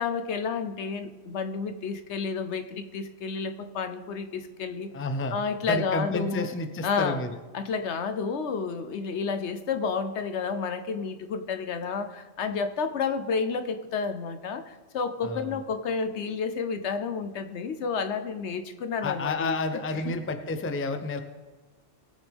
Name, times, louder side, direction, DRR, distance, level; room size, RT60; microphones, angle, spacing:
voice 1, 0.0-4.9 5.3-6.5 6.8-7.2 7.5-19.6 20.0-20.1, left 5 dB, 70° left, 9 dB, 1.0 m, -30 dB
voice 2, 4.9-5.4 5.6-7.3 15.2-15.6 19.0-21.2, left 2 dB, 15° left, 8 dB, 0.5 m, -30 dB
19.5 x 8.0 x 3.5 m, 1.2 s
omnidirectional pair, 1.2 m